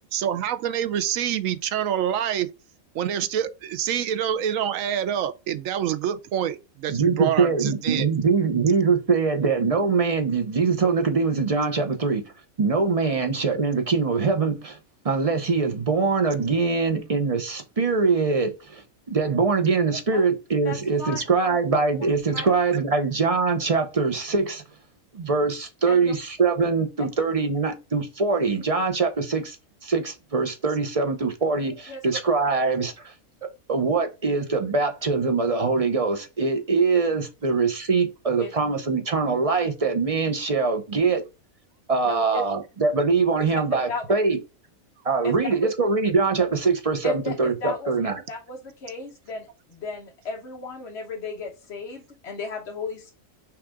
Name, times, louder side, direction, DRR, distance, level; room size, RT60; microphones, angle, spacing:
voice 1, 0.1-2.5 2.9-8.1, right 10 dB, 80° right, 1.0 m, -26 dB
voice 2, 6.9-12.2 12.6-14.8 15.0-18.8 19.1-24.6 25.1-29.6 29.8-33.1 33.7-41.2 41.9-44.4 45.0-48.2, right 4 dB, 35° right, 0.6 m, -23 dB
voice 3, 20.6-21.2 21.5-21.6 22.3-22.4 25.9-26.1 31.9-32.2 38.4-38.5 42.0-42.4 43.9-44.0 45.2-45.4 47.0-47.3 47.6-53.1, left 3 dB, 55° left, 1.2 m, -35 dB
5.7 x 2.4 x 3.4 m
omnidirectional pair, 1.4 m